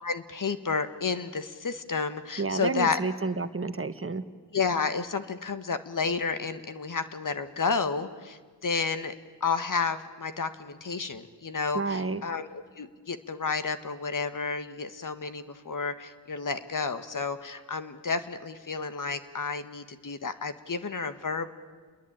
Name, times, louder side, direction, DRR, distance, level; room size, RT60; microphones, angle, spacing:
voice 1, 0.0-3.0 4.5-9.1 9.4-21.5, left 5 dB, 45° left, 11 dB, 1.7 m, -31 dB
voice 2, 2.4-4.2 11.7-12.2, right 3 dB, 30° right, 9 dB, 1.5 m, -30 dB
28.5 x 21.5 x 8.9 m, 1.4 s
cardioid pair, 60°, 44 cm